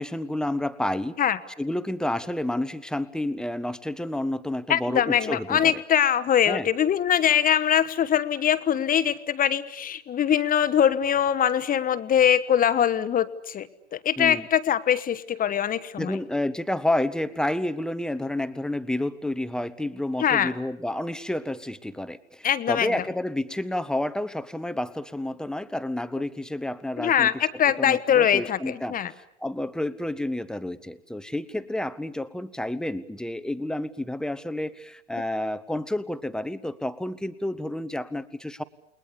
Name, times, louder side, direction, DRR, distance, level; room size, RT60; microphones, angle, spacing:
voice 1, 0.0-1.2 1.6-5.8 6.4-6.7 14.2-14.5 16.0-27.3 27.8-38.6, left 1 dB, ahead, 14 dB, 1.1 m, -30 dB
voice 2, 4.7-16.1 20.2-20.5 22.4-22.9 27.0-29.1, left 9 dB, 25° left, 14 dB, 1.3 m, -23 dB
29.5 x 21.0 x 8.5 m, 0.75 s
hypercardioid pair, 105°, 36 cm